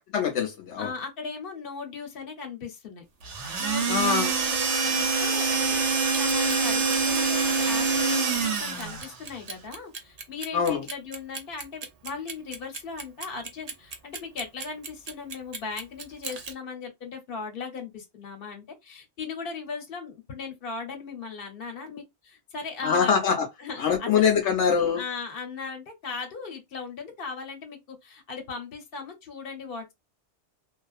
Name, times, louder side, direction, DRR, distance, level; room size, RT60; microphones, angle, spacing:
voice 1, 0.1-0.9 3.9-4.3 10.5-10.9 22.8-23.5 23.8-25.0, left 7 dB, 80° left, 0.9 m, -23 dB
voice 2, 0.8-3.0 3.6-23.2 23.6-24.2 24.9-29.9, left 5 dB, 55° left, 1.0 m, -38 dB
sound 1, 3.2-9.1, right 4 dB, 75° right, 1.0 m, -25 dB
Clock, 6.0-16.5, right 5 dB, 50° right, 0.5 m, -39 dB
2.4 x 2.3 x 2.4 m
omnidirectional pair, 1.2 m